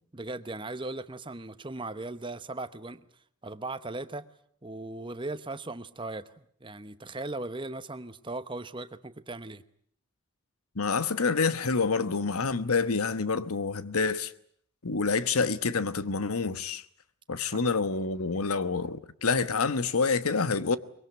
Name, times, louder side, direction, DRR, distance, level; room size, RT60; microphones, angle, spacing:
voice 1, 0.1-3.0 3.4-4.3 4.6-9.6 17.5-17.6, right 2 dB, 20° right, 1.0 m, -38 dB
voice 2, 10.7-14.3 14.8-16.8 17.3-20.8, left 4 dB, 85° left, 1.1 m, -27 dB
23.5 x 22.0 x 9.3 m
head